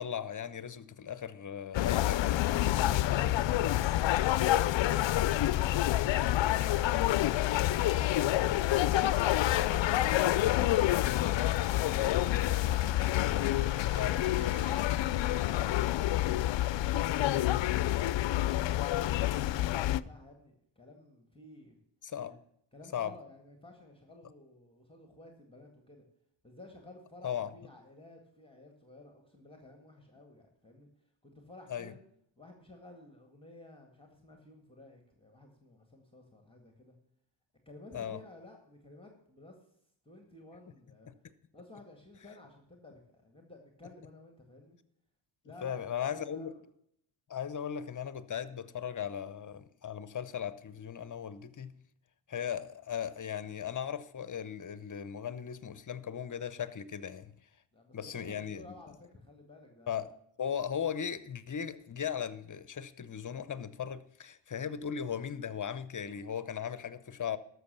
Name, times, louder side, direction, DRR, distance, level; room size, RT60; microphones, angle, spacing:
voice 1, 0.0-2.4 2.8-3.4 14.0-14.5 22.0-22.3 22.9-23.1 27.2-27.5 31.7-31.9 37.9-38.2 41.1-41.2 45.6-46.5 47.3-51.7 52.3-57.3 57.9-58.6 59.9-60.1 60.4-67.4, left 8 dB, 40° left, 0.8 m, -37 dB
sound 1, 1.7-20.0, left 14 dB, 65° left, 0.5 m, -28 dB
sound 2, 5.7-14.8, right 1 dB, 75° right, 3.7 m, -53 dB
voice 2, 17.6-21.8 22.3-22.4 22.7-26.0 26.4-30.9 31.2-32.0 32.4-37.0 37.6-39.6 40.0-41.1 41.5-44.8 45.4-45.8 46.1-46.6 57.7-60.1, left 2 dB, 10° left, 1.9 m, -53 dB
13.0 x 6.3 x 6.8 m
cardioid pair, 80°, 48 cm